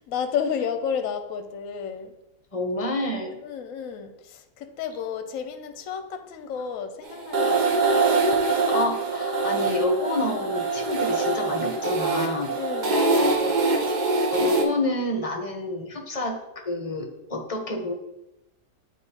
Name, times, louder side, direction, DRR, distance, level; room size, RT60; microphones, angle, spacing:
voice 1, 0.0-2.2 3.4-7.9 10.4-10.6 12.5-13.7, left 7 dB, 65° left, 8 dB, 1.0 m, -32 dB
voice 2, 2.5-3.4 8.7-12.5 14.3-16.4 16.6-17.9, left 1 dB, 30° left, 3 dB, 0.7 m, -28 dB
sound 1, 7.0-14.6, right 3 dB, 45° right, 0.6 m, -24 dB
8.9 x 3.0 x 4.2 m, 0.90 s
omnidirectional pair, 1.6 m